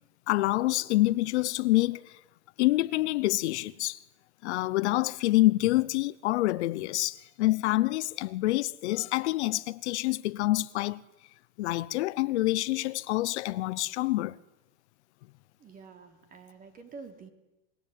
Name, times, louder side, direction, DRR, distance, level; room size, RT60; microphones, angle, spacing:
voice 1, 0.3-2.2 2.6-4.0 4.4-11.0 11.6-14.4, left 18 dB, 60° left, 0.9 m, -27 dB
voice 2, 15.6-17.3, right 4 dB, 20° right, 3.3 m, -48 dB
25.5 x 23.0 x 9.3 m
supercardioid pair, 170°, 37 cm